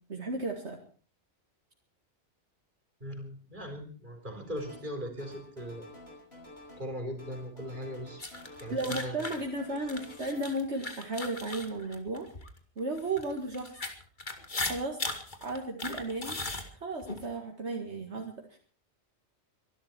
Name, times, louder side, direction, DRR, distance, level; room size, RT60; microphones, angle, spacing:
voice 1, 0.1-0.8 8.7-12.3 12.8-13.8 14.6-15.0 15.4-16.4 16.7-18.6, right 2 dB, 70° right, 2 dB, 2.3 m, -34 dB
voice 2, 3.0-5.9 6.8-8.2 8.6-9.3, equal, 40° right, 5 dB, 4.4 m, -39 dB
sound 1, 4.5-4.9 5.2-6.9 7.2-8.9 9.2-10.4, left 1 dB, 60° left, 6.3 m, -50 dB
sound 2, 8.2-12.5 13.0-17.2, left 2 dB, 40° left, 2.2 m, -38 dB
24.5 x 12.0 x 4.5 m, 0.40 s
omnidirectional pair, 1.2 m